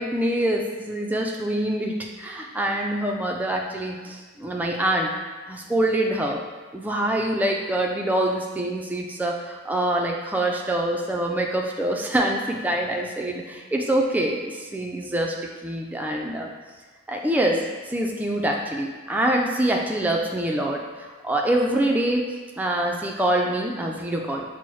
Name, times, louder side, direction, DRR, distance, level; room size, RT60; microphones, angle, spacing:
voice 1, 0.0-5.1 5.5-6.4 6.7-15.4 15.6-16.5 17.1-20.8 21.2-22.2 22.6-24.4, right 1 dB, 10° right, 0 dB, 0.3 m, -25 dB
6.0 x 2.0 x 3.1 m, 1.3 s
head